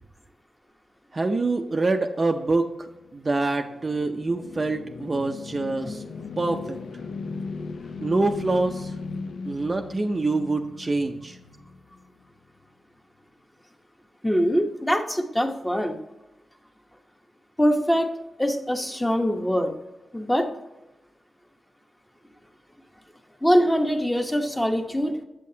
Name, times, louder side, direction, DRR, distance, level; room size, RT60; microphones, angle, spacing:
voice 1, 1.1-6.0 6.4-6.8 8.0-8.9 9.4-11.4, right 3 dB, 30° right, 4 dB, 0.5 m, -25 dB
sound 1, 3.0-12.2, left 4 dB, 80° left, 0.6 m, -37 dB
voice 2, 5.8-6.3 14.2-16.0 17.6-18.1 18.4-19.7 20.1-20.5 23.4-25.2, equal, 10° left, 4 dB, 0.9 m, -23 dB
8.3 x 7.6 x 2.8 m, 0.97 s
wide cardioid pair, 105°, 0 cm